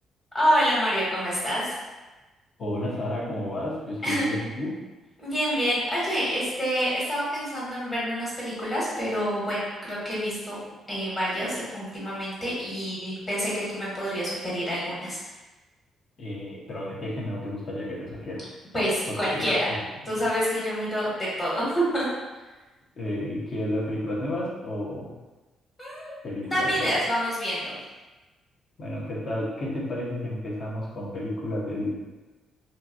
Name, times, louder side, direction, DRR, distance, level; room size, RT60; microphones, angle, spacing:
voice 1, 0.3-1.7 4.0-4.2 5.2-15.2 18.7-19.7 20.0-22.0 25.8-26.1 26.4-27.8, equal, 30° left, -7 dB, 1.5 m, -27 dB
voice 2, 2.6-4.7 16.2-18.5 19.3-19.8 23.0-25.1 26.2-26.9 28.8-31.9, left 1 dB, 50° left, -4 dB, 0.8 m, -31 dB
2.8 x 2.6 x 2.5 m, 1.2 s
cardioid pair, 90°, 0 cm